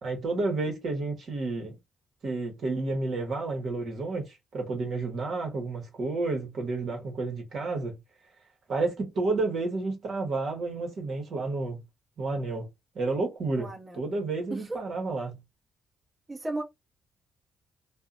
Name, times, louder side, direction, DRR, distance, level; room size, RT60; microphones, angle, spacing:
voice 1, 0.0-1.8 2.2-8.0 8.7-11.8 12.2-12.7 12.9-15.4, right 3 dB, 55° right, 1.0 m, -31 dB
voice 2, 13.6-14.0 14.5-14.8 16.3-16.6, right 2 dB, 25° right, 0.9 m, -34 dB
2.6 x 2.2 x 2.4 m
cardioid pair, 90°, 0 cm